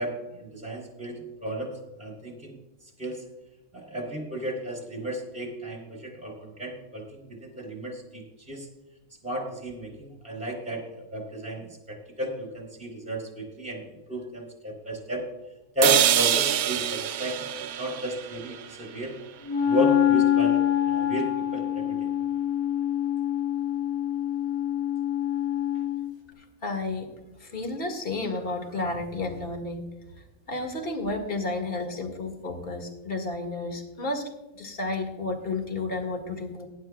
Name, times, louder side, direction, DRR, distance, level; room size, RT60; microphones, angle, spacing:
voice 1, 0.0-2.6 3.0-3.2 3.7-8.7 9.2-15.2 15.7-19.1 19.6-22.1, equal, 5° right, 1 dB, 3.0 m, -33 dB
sound 1, 15.8-19.8, right 10 dB, 80° right, 1.0 m, -26 dB
Wind instrument woodwind instrument, 19.5-26.1, left 10 dB, 20° left, 1.2 m, -25 dB
voice 2, 26.6-27.1 27.4-29.9 30.5-34.3 34.5-36.6, left 2 dB, 40° left, 3 dB, 2.0 m, -31 dB
19.5 x 10.0 x 2.3 m, 1.1 s
omnidirectional pair, 1.5 m